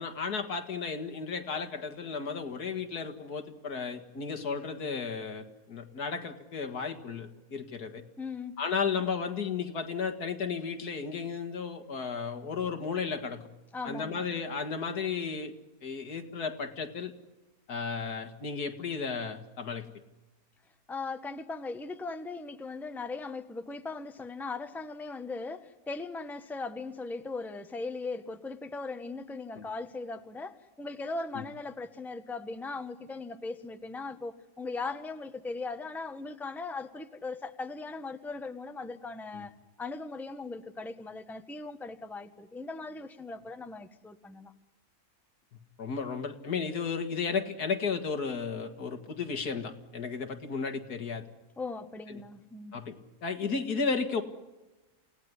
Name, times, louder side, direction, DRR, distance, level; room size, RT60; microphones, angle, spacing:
voice 1, 0.0-8.0 8.6-13.5 13.8-15.5 15.8-17.1 17.7-19.9 29.6-29.7 31.3-31.4 39.3-39.4 45.5-51.2 52.7-53.0 53.2-54.2, left 5 dB, 85° left, 7 dB, 2.4 m, -34 dB
voice 2, 8.2-8.6 13.7-14.3 20.9-39.5 39.8-44.5 51.6-52.8, left 3 dB, ahead, 8 dB, 1.0 m, -39 dB
28.0 x 17.5 x 9.7 m, 1.1 s
omnidirectional pair, 1.6 m